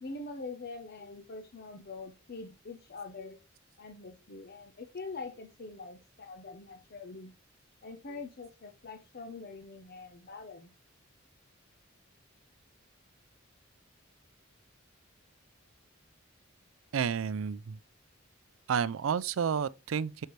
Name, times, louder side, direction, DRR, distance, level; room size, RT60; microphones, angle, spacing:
voice 1, 0.0-3.4 3.8-7.3 7.8-10.7, left 3 dB, 50° left, 0.7 m, -44 dB
voice 2, 16.9-17.8 18.7-20.3, right 7 dB, 75° right, 0.4 m, -30 dB
6.6 x 5.5 x 3.1 m
head